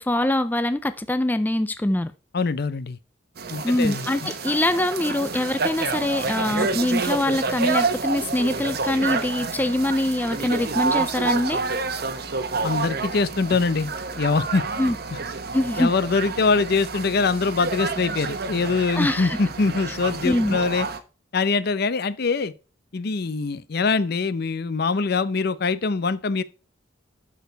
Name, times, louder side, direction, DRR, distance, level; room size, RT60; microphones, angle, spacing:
voice 1, 0.0-2.1 3.6-11.6 14.8-15.0 15.5-15.9 18.9-19.4 20.2-20.6, left 1 dB, 10° left, 0.4 m, -23 dB
voice 2, 2.3-3.0 3.5-4.3 12.6-13.9 14.2-14.6 15.8-20.9 21.3-22.5 22.9-26.4, left 4 dB, 55° left, 0.6 m, -23 dB
sound 1, 3.4-21.0, right 4 dB, 55° right, 1.0 m, -29 dB
12.0 x 4.6 x 4.5 m
head